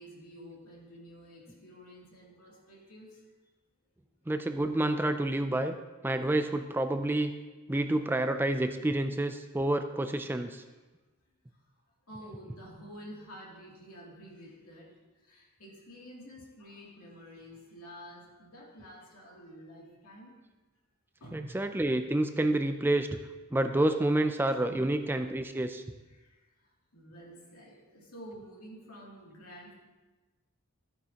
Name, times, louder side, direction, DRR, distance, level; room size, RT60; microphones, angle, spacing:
voice 1, 0.0-3.2 10.7-10.8 12.1-20.3 21.2-21.6 24.5-24.9 26.1-26.4 26.9-29.7, equal, 85° left, -3 dB, 2.7 m, -50 dB
voice 2, 4.3-5.7 6.0-7.3 7.7-10.6 21.3-23.1 23.5-25.8, right 1 dB, 10° right, 8 dB, 0.3 m, -28 dB
13.0 x 9.3 x 2.9 m, 1.2 s
head